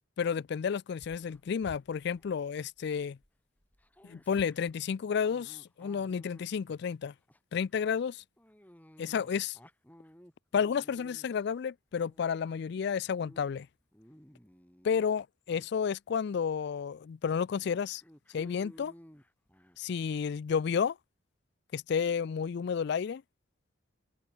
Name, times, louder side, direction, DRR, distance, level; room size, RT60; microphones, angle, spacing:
voice 1, 0.2-3.2 4.0-7.1 7.5-8.2 9.0-9.6 10.5-13.7 14.8-18.0 18.3-18.9 19.8-21.0 21.7-23.2, left 6 dB, 60° left, 0.4 m, -31 dB
Dog, 1.0-3.3 3.6-6.9 7.3-7.6 8.4-11.5 11.9-12.6 13.0-13.4 13.8-15.1 15.5-15.7 16.3-16.4 16.8-16.9 17.5-19.8, equal, 10° left, 7.0 m, -56 dB
head